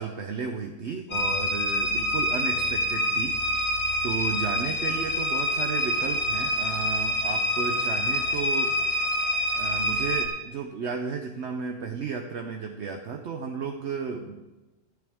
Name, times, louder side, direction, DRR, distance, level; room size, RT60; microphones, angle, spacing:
voice 1, 0.0-3.6 4.0-8.8 9.5-14.4, right 6 dB, 55° right, 4 dB, 0.8 m, -33 dB
sound 1, 1.1-10.3, equal, 65° left, 2.0 m, -26 dB
13.0 x 11.5 x 3.6 m, 1.1 s
omnidirectional pair, 1.8 m